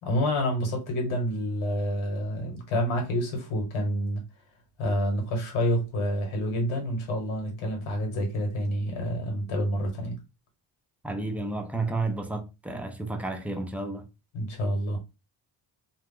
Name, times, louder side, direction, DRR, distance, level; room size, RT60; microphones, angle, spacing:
voice 1, 0.0-4.2 4.8-10.2 14.3-15.0, equal, 75° left, 1.4 m, -28 dB
voice 2, 11.0-14.0, right 2 dB, 5° right, 0.6 m, -31 dB
2.4 x 2.3 x 3.6 m
supercardioid pair, 65°, 48 cm